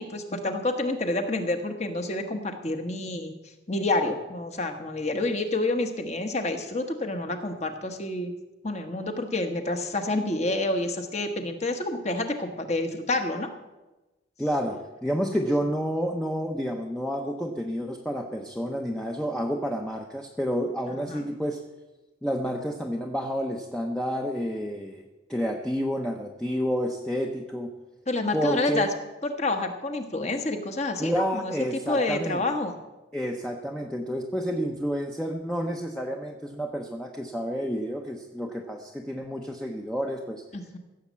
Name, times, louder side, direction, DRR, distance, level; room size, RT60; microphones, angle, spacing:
voice 1, 0.0-3.3 3.7-8.3 8.6-13.5 21.1-21.2 28.1-28.9 29.2-32.7 40.5-40.8, left 2 dB, 35° left, 6 dB, 1.2 m, -28 dB
voice 2, 14.4-21.6 22.2-27.7 28.3-28.9 31.0-32.4 33.1-40.4, equal, 5° left, 1 dB, 0.7 m, -29 dB
15.5 x 7.3 x 7.4 m, 1.1 s
head